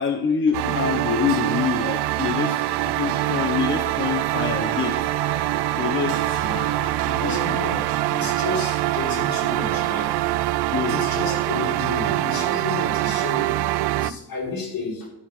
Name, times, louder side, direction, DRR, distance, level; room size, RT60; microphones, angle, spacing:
voice 1, 0.0-5.0 5.8-6.5 7.2-7.6 10.7-11.0, left 6 dB, 30° left, 6 dB, 0.8 m, -26 dB
sound 1, 0.5-14.1, right 15 dB, 75° right, 0.5 m, -24 dB
sound 2, 1.6-8.6, right 3 dB, 30° right, 1.6 m, -39 dB
voice 2, 6.3-10.3 10.9-15.1, left 3 dB, 55° left, -1 dB, 4.6 m, -32 dB
13.0 x 4.8 x 6.5 m, 0.91 s
cardioid pair, 110°, 40 cm